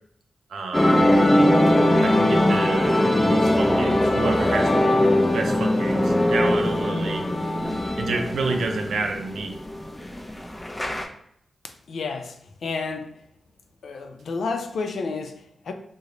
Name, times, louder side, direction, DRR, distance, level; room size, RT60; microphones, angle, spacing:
voice 1, 0.5-1.1 2.0-4.9 5.3-7.3 8.0-9.6, right 3 dB, 85° right, 0.5 m, -29 dB
sound 1, 0.7-11.0, left 1 dB, 10° left, 0.5 m, -20 dB
voice 2, 11.9-13.2 13.8-15.7, left 4 dB, 75° left, 0.4 m, -31 dB
3.1 x 2.1 x 3.7 m
wide cardioid pair, 120°, 0 cm